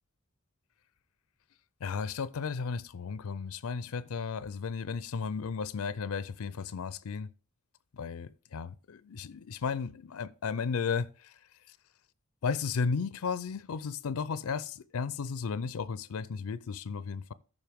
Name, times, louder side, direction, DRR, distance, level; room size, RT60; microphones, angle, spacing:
voice 1, 1.8-7.3 7.9-11.4 12.4-17.3, left 5 dB, 85° left, 0.5 m, -34 dB
13.5 x 5.4 x 3.5 m
head